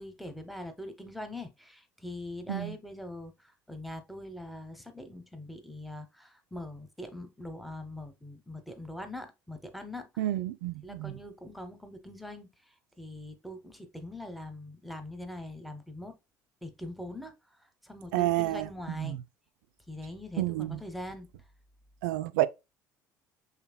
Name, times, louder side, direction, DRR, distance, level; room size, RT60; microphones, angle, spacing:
voice 1, 0.0-10.3 10.8-12.5 13.0-16.2 16.6-17.3 17.8-19.2 19.9-21.3, left 1 dB, ahead, 1.0 m, -42 dB
voice 2, 10.2-11.2 18.1-18.7 19.0-19.2 20.4-20.8 22.0-22.5, right 15 dB, 70° right, 0.4 m, -29 dB
5.7 x 3.5 x 2.2 m
figure-of-eight pair, 60°, 10 cm